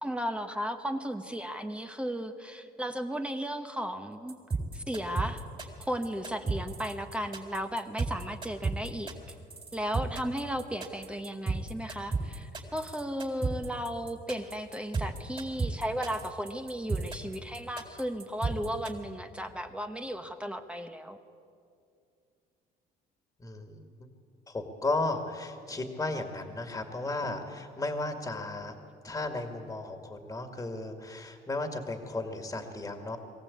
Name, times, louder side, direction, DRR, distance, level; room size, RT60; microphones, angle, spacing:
voice 1, 0.0-4.4 4.7-5.4 5.8-9.1 9.7-21.2, equal, 5° right, 6 dB, 1.1 m, -35 dB
sound 1, 4.3-18.9, right 4 dB, 30° right, 4.0 m, -33 dB
voice 2, 23.4-23.8 24.5-28.8 29.0-33.2, left 2 dB, 15° left, 5 dB, 2.0 m, -34 dB
22.0 x 16.0 x 8.5 m, 2.4 s
cardioid pair, 110°, 17 cm